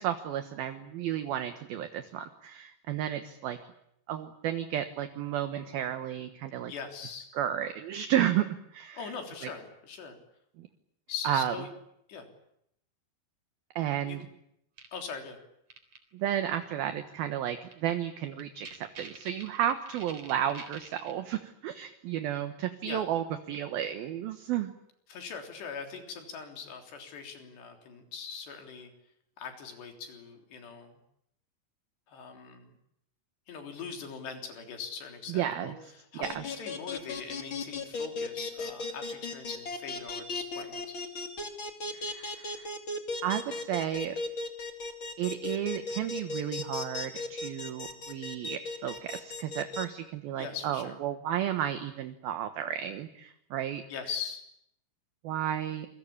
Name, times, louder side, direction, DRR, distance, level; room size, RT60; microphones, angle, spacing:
voice 1, 0.0-3.6 4.1-6.7 7.3-9.1 9.4-9.5 10.6-10.7 11.2-11.5 13.8-14.2 16.1-24.7 35.3-35.7 36.1-36.4 41.9-42.7 43.2-44.2 45.2-53.8 55.2-55.9, right 11 dB, 65° right, 8 dB, 2.8 m, -32 dB
voice 2, 6.7-7.3 8.9-10.2 11.1-11.7 12.1-12.3 14.1-14.2 14.9-15.4 22.8-23.0 25.1-28.9 29.4-31.0 32.1-32.7 33.5-35.7 36.1-41.0 50.4-51.0 53.9-54.4, left 6 dB, 70° left, 4 dB, 5.6 m, -41 dB
sound 1, 14.8-14.9 15.7-16.0 17.7-17.8 18.1-18.2 18.4-21.1, right 4 dB, 40° right, 4.6 m, -46 dB
sound 2, 36.2-49.8, left 3 dB, 30° left, 2.8 m, -36 dB
28.0 x 23.0 x 8.6 m, 0.76 s
omnidirectional pair, 5.2 m